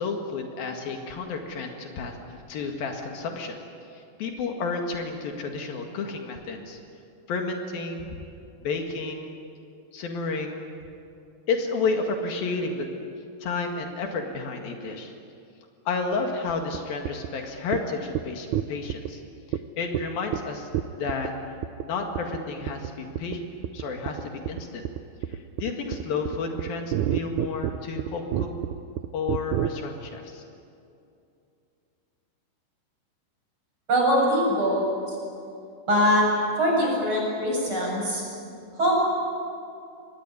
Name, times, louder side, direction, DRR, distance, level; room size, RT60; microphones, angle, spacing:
voice 1, 0.0-2.2 2.5-3.6 4.2-6.8 7.3-8.1 8.6-9.3 9.9-10.6 11.5-12.9 13.4-15.1 15.9-19.2 19.8-20.7 21.0-21.3 21.8-23.4 23.7-24.9 25.3-28.5 29.1-30.4, left 4 dB, 70° left, 3 dB, 3.7 m, -31 dB
sound 1, 16.7-16.8 17.1-17.3 17.7-17.8 18.1-18.2 18.5-19.1 19.5-19.6 19.9-20.0 20.3-20.4 20.7-21.3 21.6-21.9 22.2-22.4 22.7-22.9 23.2-23.4 23.6-29.7, right 12 dB, 80° right, 1.8 m, -28 dB
voice 2, 33.9-34.8 35.9-36.2 36.6-38.2 38.8-39.0, equal, 30° right, -2 dB, 8.2 m, -22 dB
25.5 x 19.5 x 9.7 m, 2.6 s
omnidirectional pair, 4.3 m